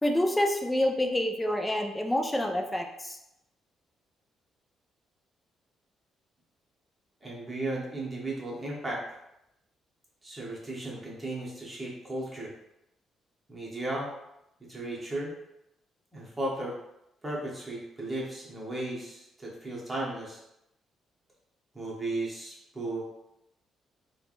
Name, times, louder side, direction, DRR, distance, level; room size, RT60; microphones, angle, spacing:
voice 1, 0.0-3.2, left 1 dB, 10° left, 3 dB, 0.4 m, -27 dB
voice 2, 7.2-9.0 10.2-12.5 13.5-14.1 14.7-15.3 16.1-16.7 17.2-20.4 21.7-23.1, right 2 dB, 20° right, -5 dB, 1.1 m, -35 dB
3.3 x 2.2 x 2.5 m, 0.84 s
cardioid pair, 90°, 0 cm